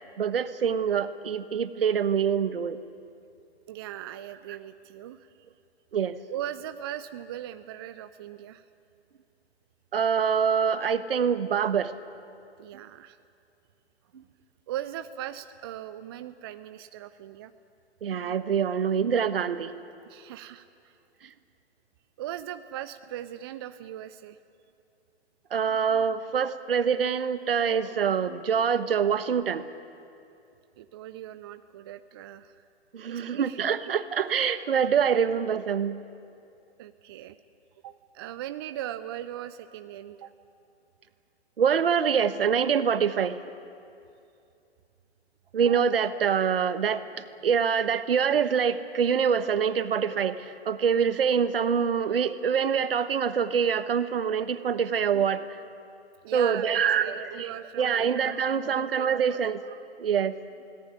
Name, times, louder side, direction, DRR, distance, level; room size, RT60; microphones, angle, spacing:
voice 1, 0.2-2.8 5.9-6.2 9.9-11.9 18.0-19.7 25.5-29.7 32.9-36.0 41.6-43.4 45.5-47.0 47.4-55.4 56.3-57.5 57.8-59.6 60.0-60.4, right 7 dB, 55° right, 12 dB, 1.3 m, -25 dB
voice 2, 3.7-5.3 6.3-8.7 12.6-13.2 14.7-17.5 20.0-21.0 22.2-24.4 30.8-32.6 33.1-34.0 35.5-35.6 36.8-37.4 37.8-40.3 56.2-58.4 58.6-59.5, right 12 dB, 25° right, 11 dB, 0.5 m, -39 dB
22.5 x 18.0 x 9.8 m, 2.6 s
figure-of-eight pair, 120°, 33 cm